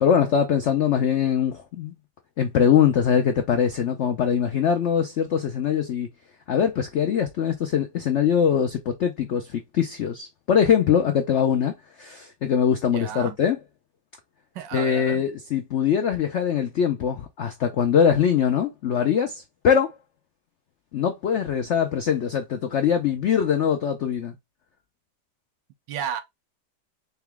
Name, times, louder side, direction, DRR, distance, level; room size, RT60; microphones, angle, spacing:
voice 1, 0.0-1.9 2.4-6.1 6.5-13.6 14.7-20.0 20.9-24.3, left 8 dB, 75° left, 0.6 m, -22 dB
voice 2, 12.8-13.4 14.5-15.2 25.9-26.2, right 9 dB, 85° right, 1.4 m, -32 dB
3.9 x 3.0 x 3.4 m
omnidirectional pair, 1.9 m